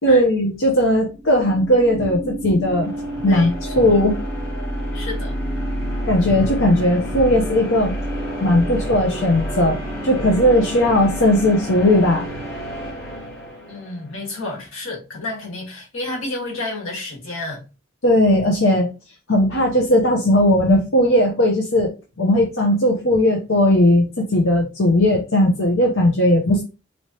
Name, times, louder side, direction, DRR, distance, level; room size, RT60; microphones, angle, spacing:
voice 1, 0.0-2.9 3.2-4.2 6.1-7.9 8.4-12.3 18.0-18.9 19.3-21.9 22.2-26.6, left 1 dB, 75° left, 0.9 m, -17 dB
sound 1, 1.1-14.1, equal, 15° left, 2.3 m, -29 dB
voice 2, 4.9-5.4 13.7-17.6, left 2 dB, 90° left, 1.8 m, -30 dB
4.2 x 3.2 x 2.9 m
head